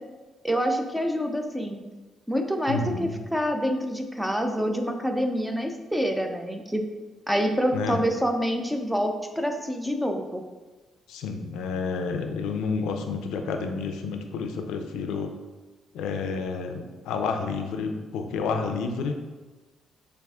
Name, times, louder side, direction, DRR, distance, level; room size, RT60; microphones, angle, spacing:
voice 1, 0.4-1.8 2.3-6.8 7.3-10.4, equal, 5° right, 4 dB, 0.5 m, -27 dB
voice 2, 2.7-3.2 7.7-8.0 11.1-15.3 15.9-19.1, left 4 dB, 90° left, 5 dB, 0.4 m, -30 dB
6.7 x 2.4 x 2.3 m, 1.2 s
cardioid pair, 90°, 0 cm